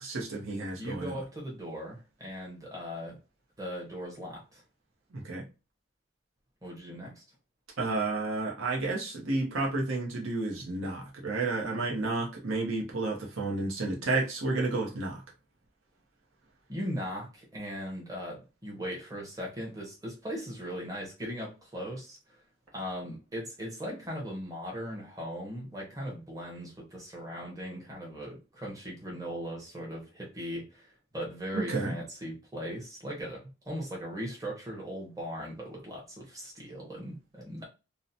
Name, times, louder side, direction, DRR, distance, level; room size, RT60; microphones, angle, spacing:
voice 1, 0.0-1.2 5.1-5.5 7.8-15.2 31.5-31.9, right 3 dB, 75° right, 0.7 m, -31 dB
voice 2, 0.7-3.2 3.6-4.6 6.6-7.2 16.7-22.4 22.7-37.7, equal, 15° right, 0.8 m, -39 dB
2.7 x 2.1 x 2.5 m
head